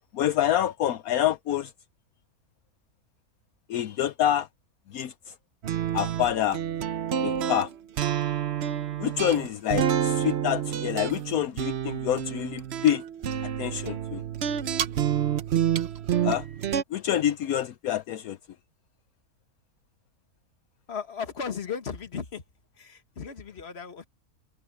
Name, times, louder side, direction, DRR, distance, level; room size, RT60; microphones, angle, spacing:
voice 1, 0.1-1.7 3.7-4.5 4.9-5.3 5.9-6.6 7.2-7.7 9.0-13.0 13.4-14.2 16.2-16.5 16.9-18.4, left 11 dB, 75° left, 1.1 m, -27 dB
sound 1, 5.6-16.8, right 9 dB, 55° right, 0.9 m, -28 dB
voice 2, 20.9-22.4 22.7-24.0, left 6 dB, 45° left, 1.7 m, -35 dB
omnidirectional pair, 1.6 m